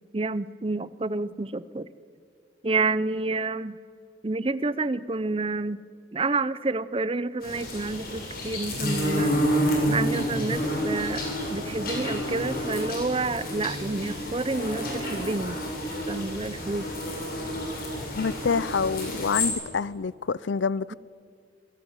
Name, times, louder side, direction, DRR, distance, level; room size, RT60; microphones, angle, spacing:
voice 1, 0.1-1.9 2.6-3.8 4.2-5.8 6.1-9.3 9.9-11.2 11.5-15.6 16.1-16.9, right 3 dB, 30° right, 0.6 m, -29 dB
sound 1, 7.4-19.5, equal, 50° left, 6.9 m, -29 dB
voice 2, 18.2-20.9, left 5 dB, 80° left, 0.5 m, -27 dB
26.5 x 18.5 x 9.0 m
head